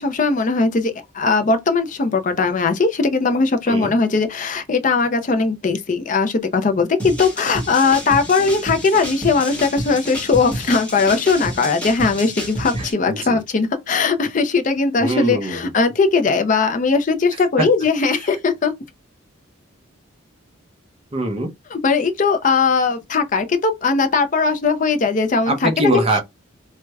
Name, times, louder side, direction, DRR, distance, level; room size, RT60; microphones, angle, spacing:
voice 1, 0.0-18.7 21.7-26.0, left 4 dB, 40° left, 0.4 m, -19 dB
sound 1, 7.0-12.9, equal, 5° left, 0.9 m, -29 dB
voice 2, 12.8-13.4 15.0-15.6 17.6-17.7 21.1-21.5 25.5-26.2, right 1 dB, 30° right, 0.6 m, -22 dB
4.5 x 2.1 x 2.3 m
head